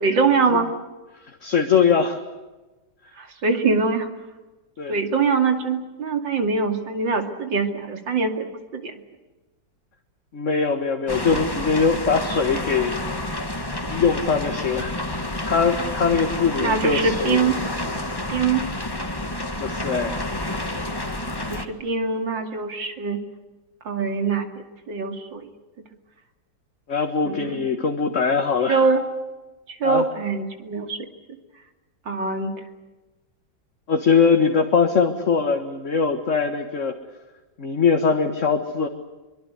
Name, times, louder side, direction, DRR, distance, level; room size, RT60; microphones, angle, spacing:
voice 1, 0.0-0.7 3.2-4.1 4.9-9.0 16.6-17.6 18.3-18.7 21.5-23.2 23.8-24.5 24.9-25.5 27.2-27.6 28.7-29.0 29.7-31.1 32.1-32.6, right 4 dB, 80° right, 6 dB, 3.2 m, -23 dB
voice 2, 1.4-2.2 4.8-4.9 10.3-12.9 13.9-14.9 15.5-17.4 19.6-20.1 26.9-28.8 29.8-30.0 33.9-36.9 37.6-38.9, left 5 dB, 40° left, 5 dB, 1.8 m, -21 dB
sound 1, 11.1-21.7, left 1 dB, 15° left, 1.6 m, -29 dB
24.5 x 24.0 x 8.1 m, 1.2 s
omnidirectional pair, 2.0 m